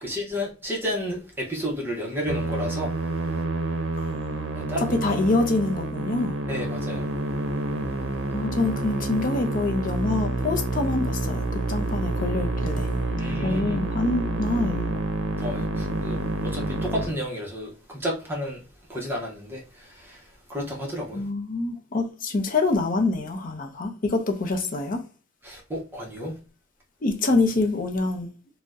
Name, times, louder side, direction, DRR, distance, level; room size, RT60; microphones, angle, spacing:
voice 1, 0.0-2.9 4.5-4.9 6.5-7.0 13.2-13.8 15.4-18.6 18.9-19.6 20.1-20.2 20.5-21.2 25.4-26.3, equal, 10° right, 0.7 m, -31 dB
Musical instrument, 2.3-17.1, right 2 dB, 75° right, 0.6 m, -28 dB
voice 2, 4.0-4.4 4.8-6.4 8.3-12.9 13.4-14.9 21.1-25.0 27.0-28.3, left 2 dB, 45° left, 0.5 m, -26 dB
2.6 x 2.1 x 3.5 m
head